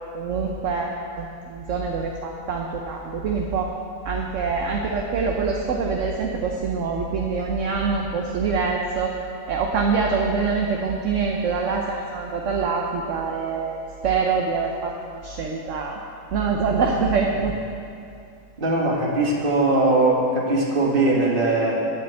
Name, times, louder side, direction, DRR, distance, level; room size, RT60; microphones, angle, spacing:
voice 1, 0.1-3.7 4.0-9.1 9.5-16.0 16.3-17.5, right 5 dB, 55° right, 0 dB, 1.1 m, -25 dB
voice 2, 18.6-21.9, right 2 dB, 35° right, -2 dB, 1.8 m, -20 dB
9.5 x 7.6 x 8.1 m, 2.4 s
omnidirectional pair, 1.7 m